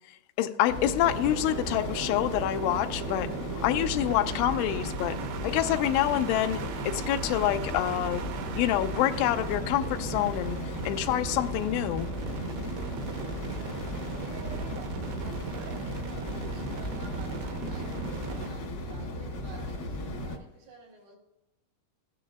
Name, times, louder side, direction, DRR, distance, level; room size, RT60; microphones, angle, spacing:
voice 1, 0.4-3.3 3.6-5.2 5.4-8.2 8.6-10.6 10.9-12.1, left 13 dB, 90° left, 6 dB, 3.0 m, -27 dB
sound 1, 0.7-20.4, left 1 dB, 60° left, 1.3 m, -36 dB
sound 2, 1.0-18.5, right 5 dB, 75° right, 2.5 m, -38 dB
voice 2, 14.2-14.9 15.2-21.2, right 4 dB, 90° right, -3 dB, 4.8 m, -50 dB
16.0 x 10.0 x 2.2 m, 0.94 s
omnidirectional pair, 5.3 m